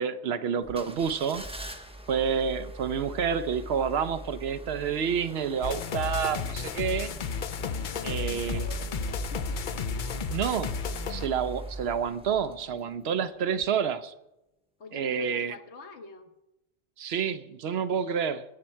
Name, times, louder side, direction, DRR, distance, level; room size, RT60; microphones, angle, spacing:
voice 1, 0.0-1.5 2.1-7.1 8.0-8.6 10.3-10.7 11.1-14.1 14.9-15.5 17.0-18.4, right 7 dB, 65° right, 0.8 m, -29 dB
sound 1, 0.6-13.1 13.6-13.7, right 2 dB, 5° right, 0.8 m, -41 dB
sound 2, 5.6-11.3, left 5 dB, 55° left, 0.6 m, -33 dB
voice 2, 7.6-10.4 11.0-11.2 12.7-13.0 13.4-13.7 14.8-16.3, left 3 dB, 70° left, 1.4 m, -47 dB
20.0 x 7.4 x 4.4 m
omnidirectional pair, 1.2 m